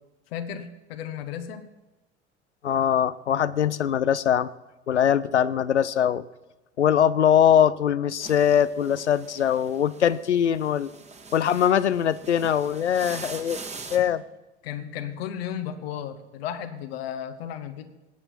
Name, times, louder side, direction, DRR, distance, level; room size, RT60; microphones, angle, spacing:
voice 1, 0.3-1.7 14.0-14.2 14.6-17.9, left 9 dB, 60° left, 8 dB, 1.2 m, -34 dB
voice 2, 2.6-4.5 4.9-6.2 6.8-10.9 11.3-13.6 13.9-14.2, left 9 dB, 85° left, 17 dB, 0.6 m, -22 dB
sound 1, 8.2-14.0, right 4 dB, 20° right, 1.6 m, -43 dB
19.0 x 8.7 x 4.4 m, 1.1 s
figure-of-eight pair, 75°, 34 cm